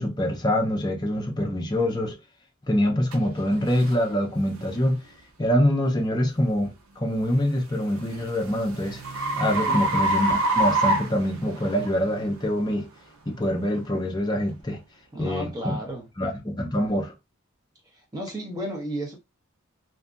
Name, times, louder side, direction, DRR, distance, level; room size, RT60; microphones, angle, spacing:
voice 1, 0.0-2.2 2.7-5.0 5.4-9.0 9.4-12.9 13.3-14.8 15.2-15.8 16.2-17.1, equal, 20° left, 0.5 m, -25 dB
sound 1, 3.1-3.2 3.8-4.0 4.6-4.8 7.4-11.9, right 2 dB, 70° right, 0.6 m, -25 dB
voice 2, 15.1-16.0 17.9-19.2, right 1 dB, 20° right, 0.9 m, -33 dB
2.7 x 2.5 x 2.4 m
head